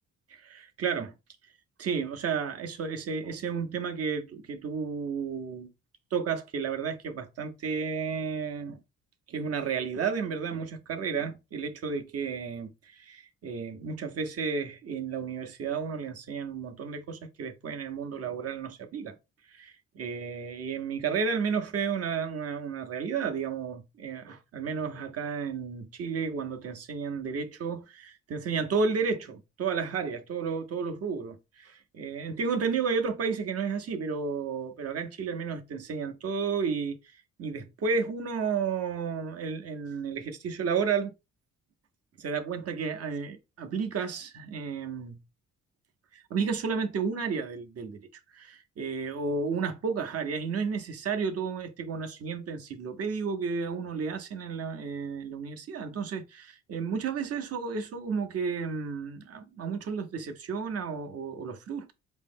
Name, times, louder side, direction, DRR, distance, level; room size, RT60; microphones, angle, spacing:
voice 1, 0.3-1.1 1.8-5.7 6.1-8.8 9.3-19.2 19.5-37.0 37.4-41.1 42.2-45.2 46.1-61.9, right 5 dB, 50° right, 0.8 m, -32 dB
4.5 x 2.0 x 3.5 m
cardioid pair, 90°, 30 cm